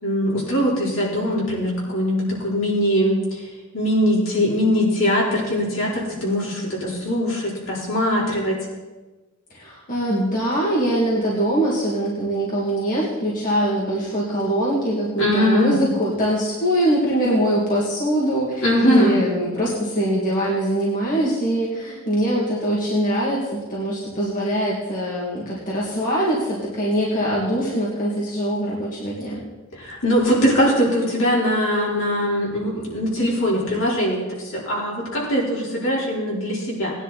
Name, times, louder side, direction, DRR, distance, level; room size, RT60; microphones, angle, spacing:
voice 1, 0.0-3.4 3.7-8.6 15.2-15.8 18.6-19.2 29.7-36.9, equal, 65° left, -5 dB, 4.2 m, -21 dB
voice 2, 9.5-29.4, right 1 dB, 40° left, -5 dB, 2.4 m, -23 dB
19.0 x 10.0 x 4.2 m, 1.2 s
head